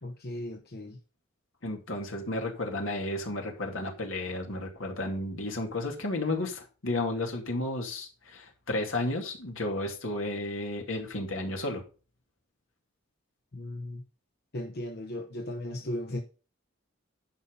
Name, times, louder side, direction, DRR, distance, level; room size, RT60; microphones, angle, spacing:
voice 1, 0.0-1.0 13.5-14.0 14.5-16.2, left 1 dB, 55° left, 1.0 m, -36 dB
voice 2, 1.6-11.8, left 2 dB, 80° left, 2.5 m, -33 dB
11.0 x 5.6 x 5.3 m
head